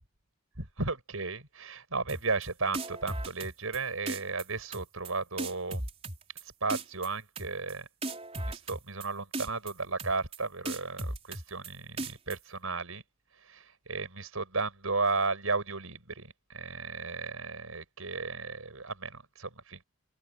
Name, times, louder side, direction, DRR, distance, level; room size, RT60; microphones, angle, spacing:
voice 1, 0.6-5.8 6.6-7.9 8.5-13.0 13.4-19.8, right 3 dB, 85° right, 5.3 m, -34 dB
sound 1, 2.1-2.5 2.7-3.8 4.1-4.4 4.7-5.1 5.4-6.4 6.7-7.1 7.4-7.7 8.0-9.1 9.3-9.7 10.0-10.4 10.7-11.7 12.0-12.4, right 2 dB, 30° right, 4.6 m, -36 dB
open air
head